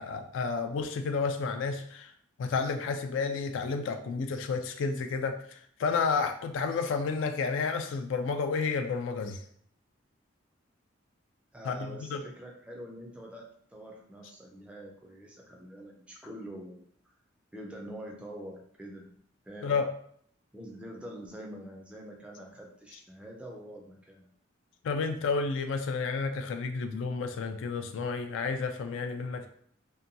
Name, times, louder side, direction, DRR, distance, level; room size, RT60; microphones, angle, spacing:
voice 1, 0.0-2.1 2.4-9.4 11.7-12.2 19.6-19.9 24.8-29.5, left 4 dB, 75° left, 6 dB, 0.3 m, -31 dB
voice 2, 11.5-16.9 17.5-19.1 19.5-19.7 20.5-24.3, right 1 dB, 5° right, -1 dB, 0.3 m, -45 dB
2.7 x 2.2 x 2.6 m, 0.62 s
head